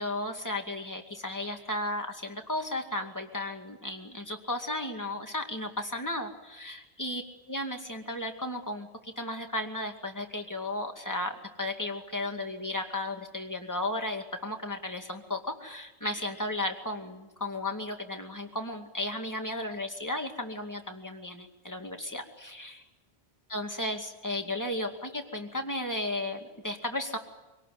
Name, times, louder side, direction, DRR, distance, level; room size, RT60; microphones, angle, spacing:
voice 1, 0.0-7.2 7.5-22.8 23.5-27.2, left 1 dB, 15° left, 3 dB, 2.3 m, -34 dB
25.5 x 18.5 x 9.4 m, 1.1 s
omnidirectional pair, 1.1 m